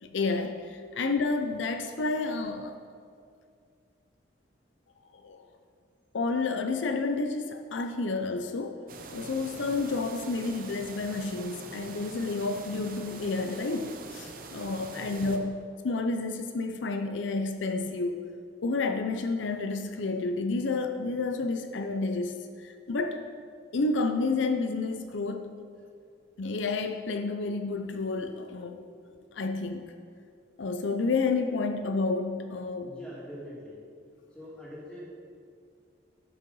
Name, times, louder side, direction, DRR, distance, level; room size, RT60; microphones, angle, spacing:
voice 1, 0.0-2.8 5.2-5.4 6.1-8.8 9.1-18.3 18.6-23.2 23.7-25.5 26.4-28.9 29.3-29.9 30.6-32.9, left 3 dB, 85° left, 7 dB, 0.6 m, -30 dB
sound 1, 8.9-15.4, right 3 dB, 50° right, 0.8 m, -44 dB
voice 2, 32.8-33.8 34.3-35.1, equal, 5° left, -7 dB, 2.4 m, -44 dB
11.5 x 5.6 x 5.4 m, 2.2 s
head